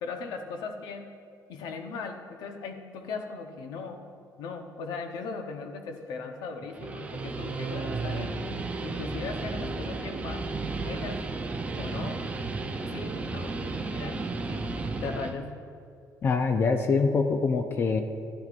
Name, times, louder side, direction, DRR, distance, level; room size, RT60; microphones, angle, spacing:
voice 1, 0.0-1.1 1.5-4.0 4.4-8.3 8.8-10.5 10.8-11.2 11.7-12.2 12.8-14.7 15.0-15.6, left 4 dB, 85° left, 5 dB, 0.8 m, -38 dB
Guitar, 6.6-15.3, right 3 dB, 20° right, 0.5 m, -33 dB
voice 2, 16.2-18.0, left 4 dB, 35° left, 6 dB, 0.4 m, -24 dB
13.0 x 10.5 x 2.5 m, 2.4 s
cardioid pair, 150°, 7 cm